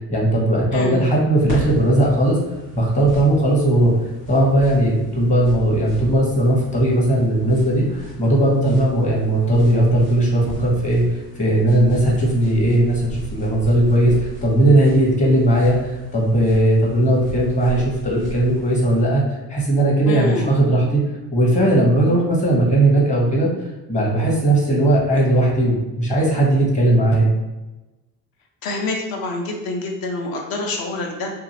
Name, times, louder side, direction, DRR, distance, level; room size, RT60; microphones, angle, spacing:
voice 1, 0.1-2.4 2.7-3.9 4.3-11.0 11.4-13.0 13.3-14.1 14.4-19.2 19.5-21.0 21.3-23.5 23.9-27.3, right 1 dB, 15° left, -4 dB, 1.0 m, -17 dB
voice 2, 0.7-1.0 20.0-20.5 28.6-31.3, left 2 dB, 45° left, 2 dB, 0.7 m, -26 dB
sound 1, 1.5-19.0, equal, 85° left, 1.3 m, -36 dB
2.7 x 2.5 x 2.7 m, 1.1 s
figure-of-eight pair, 60°, 49 cm